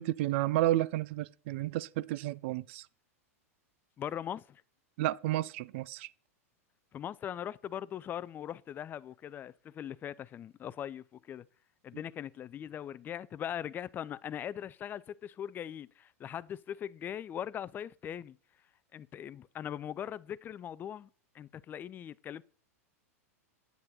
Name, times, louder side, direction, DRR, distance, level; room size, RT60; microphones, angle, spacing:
voice 1, 0.0-2.8 5.0-6.1, right 15 dB, 55° right, 0.4 m, -31 dB
voice 2, 4.0-4.6 6.9-11.5 11.8-18.4 18.9-21.1 21.3-22.4, left 9 dB, 25° left, 0.4 m, -40 dB
9.6 x 9.2 x 4.1 m
figure-of-eight pair, 95°, 8 cm